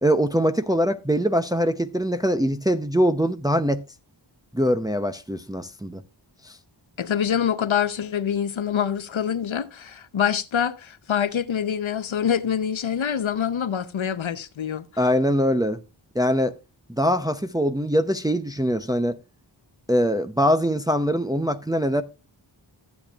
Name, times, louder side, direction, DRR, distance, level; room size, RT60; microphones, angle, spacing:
voice 1, 0.0-3.8 4.5-6.0 6.4-6.5 15.0-15.8 16.1-16.5 16.9-19.2 19.9-22.0, equal, 10° right, 0.6 m, -22 dB
voice 2, 7.0-14.8, left 8 dB, 90° left, 0.8 m, -25 dB
14.5 x 8.6 x 2.4 m
wide cardioid pair, 70°, 46 cm